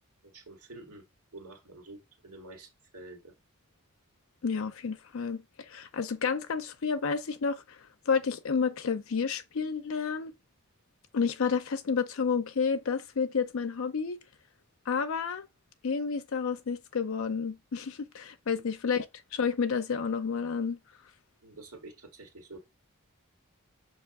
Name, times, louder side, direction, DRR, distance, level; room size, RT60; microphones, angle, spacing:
voice 1, 0.2-1.0 1.3-3.3 18.5-18.6 21.4-22.6, right 2 dB, 85° right, 1.8 m, -48 dB
voice 2, 4.4-7.8 8.1-10.3 11.1-14.2 14.9-15.5 15.8-20.8, left 5 dB, 65° left, 0.5 m, -30 dB
6.8 x 2.9 x 4.6 m
head